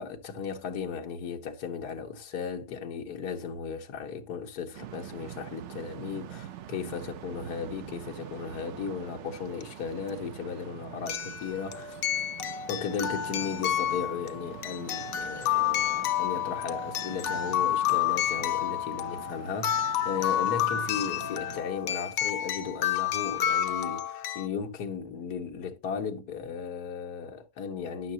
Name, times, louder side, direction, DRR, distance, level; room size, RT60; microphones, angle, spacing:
voice 1, 0.0-12.0 12.7-28.1, left 6 dB, 90° left, 1.6 m, -36 dB
sound 1, 4.7-21.6, right 11 dB, 60° right, 0.8 m, -45 dB
sound 2, 9.6-9.7 11.1-24.5, left 11 dB, 65° left, 1.1 m, -30 dB
11.0 x 6.4 x 2.8 m
omnidirectional pair, 1.6 m